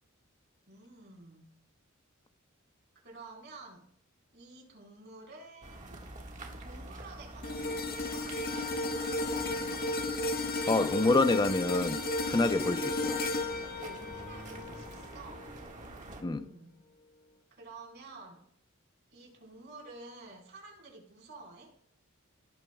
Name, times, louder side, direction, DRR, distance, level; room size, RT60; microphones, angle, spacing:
voice 1, 0.7-1.5 2.9-3.8 4.3-6.0 6.6-8.2 13.8-15.7 16.1-16.8 17.5-18.5 19.1-21.7, right 3 dB, 55° right, 4.7 m, -50 dB
sound 1, 5.6-16.2, right 2 dB, 35° right, 1.8 m, -47 dB
sound 2, 7.4-15.8 16.2-16.4, left 2 dB, 50° left, 1.5 m, -34 dB
voice 2, 10.7-13.2 16.2-16.5, left 3 dB, 20° left, 0.6 m, -27 dB
18.0 x 8.9 x 2.3 m
head